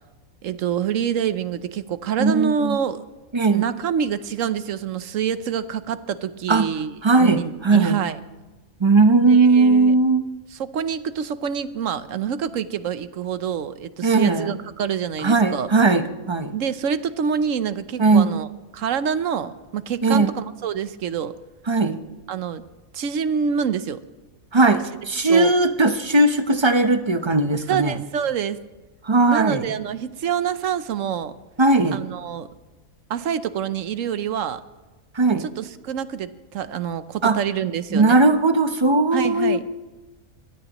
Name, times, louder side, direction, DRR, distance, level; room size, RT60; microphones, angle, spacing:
voice 1, 0.4-3.0 3.5-8.2 9.1-9.9 10.5-15.7 16.5-18.5 18.7-21.3 22.3-22.6 22.9-24.0 25.3-25.5 27.7-28.6 29.3-31.3 31.9-32.5 33.1-34.6 35.4-38.2 39.1-39.6, right 7 dB, 65° right, 13 dB, 1.1 m, -26 dB
voice 2, 2.2-2.8 3.3-3.6 6.5-6.7 7.0-8.0 8.8-10.2 14.0-14.6 15.2-16.5 18.0-18.3 20.0-20.3 21.7-22.0 24.5-27.9 29.0-29.7 31.6-32.0 35.1-35.5 37.2-37.4 37.9-39.6, right 3 dB, 25° right, 8 dB, 0.7 m, -18 dB
23.5 x 18.0 x 3.0 m, 1.2 s
omnidirectional pair, 1.5 m